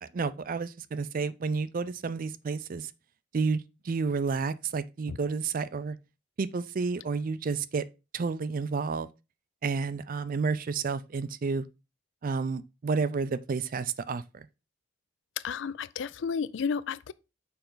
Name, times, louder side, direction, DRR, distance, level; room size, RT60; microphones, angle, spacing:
voice 1, 0.0-2.9 3.3-6.0 6.4-7.9 8.1-9.1 9.6-11.7 12.2-14.5, right 4 dB, 45° right, 0.4 m, -30 dB
voice 2, 15.4-17.1, left 6 dB, 65° left, 0.4 m, -32 dB
6.8 x 5.2 x 3.8 m
head